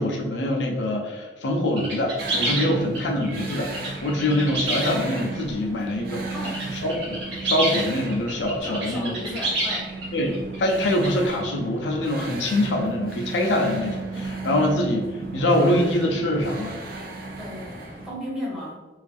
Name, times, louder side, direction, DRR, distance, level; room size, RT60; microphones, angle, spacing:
voice 1, 0.0-3.7 4.0-6.2 6.8-9.1 10.1-17.1, left 1 dB, 80° left, 1 dB, 0.5 m, -24 dB
sound 1, 1.8-5.4 5.9-6.6 6.9-11.5, right 1 dB, 80° right, 1.0 m, -29 dB
sound 2, 2.2-18.1, right 3 dB, 55° right, 0.4 m, -35 dB
voice 2, 6.3-6.7 8.6-9.9 17.4-18.8, left 1 dB, 5° right, -7 dB, 0.7 m, -35 dB
2.4 x 2.4 x 2.5 m, 1.1 s
head